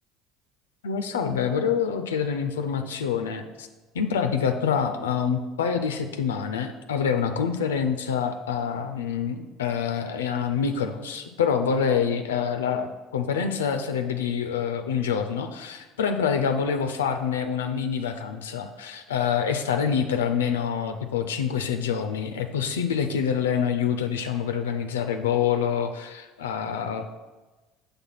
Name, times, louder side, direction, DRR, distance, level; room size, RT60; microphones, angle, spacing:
voice 1, 0.8-3.7 3.9-27.0, left 7 dB, 85° left, 7 dB, 0.3 m, -26 dB
6.1 x 3.4 x 5.6 m, 1.2 s
hypercardioid pair, 65°, 0 cm